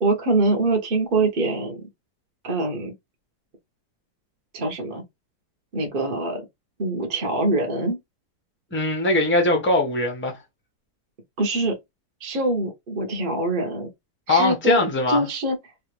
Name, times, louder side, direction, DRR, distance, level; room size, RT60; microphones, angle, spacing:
voice 1, 0.0-1.9 2.4-2.9 4.5-5.0 5.7-6.5 6.8-8.0 11.4-11.8 12.2-13.9 14.3-14.8 15.1-15.6, right 2 dB, 40° right, 0.8 m, -24 dB
voice 2, 8.7-10.4 14.3-15.3, left 2 dB, 15° left, 0.4 m, -21 dB
3.3 x 2.4 x 3.1 m
omnidirectional pair, 2.0 m